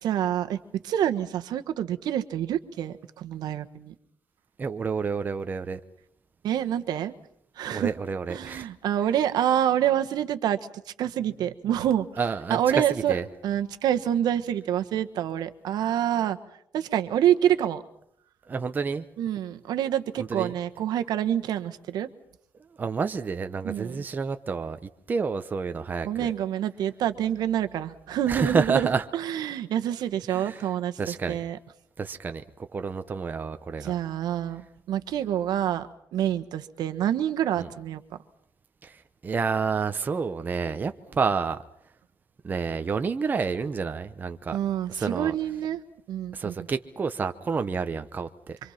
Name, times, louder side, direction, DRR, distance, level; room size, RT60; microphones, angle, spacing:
voice 1, 0.0-3.9 6.4-7.1 7.6-7.9 8.3-10.6 11.0-12.1 12.5-16.4 16.7-17.8 19.2-22.1 23.6-24.0 26.0-28.9 29.1-31.6 33.8-38.0 44.5-45.8 46.1-46.7, right 10 dB, 70° right, 8 dB, 1.3 m, -27 dB
voice 2, 4.6-5.8 7.7-8.7 12.2-13.2 18.5-19.1 20.2-20.5 22.8-24.8 25.1-26.3 28.3-29.0 30.3-30.7 31.0-31.4 32.0-32.4 32.7-33.9 37.6-37.7 38.8-39.0 39.2-41.6 42.4-44.6 44.9-45.3 46.3-48.6, right 5 dB, 25° right, 8 dB, 0.9 m, -29 dB
26.0 x 25.5 x 5.9 m, 0.71 s
cardioid pair, 155°, 7 cm